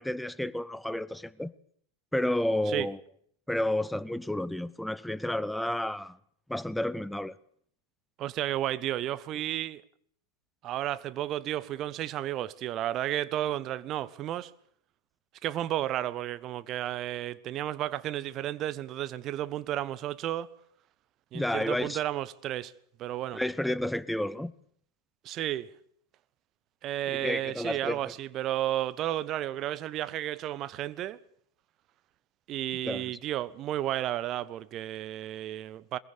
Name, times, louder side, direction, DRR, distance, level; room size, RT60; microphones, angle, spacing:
voice 1, 0.0-1.5 2.1-3.0 3.5-6.2 6.5-7.3 21.3-22.0 23.3-24.5 27.1-28.1 32.8-33.1, left 1 dB, 5° left, 1.0 m, -31 dB
voice 2, 8.2-9.8 10.6-14.5 15.4-20.5 21.3-22.7 23.0-23.4 25.2-25.7 26.8-31.2 32.5-36.0, right 13 dB, 35° right, 1.2 m, -32 dB
22.5 x 21.5 x 6.8 m
figure-of-eight pair, 90°, 0 cm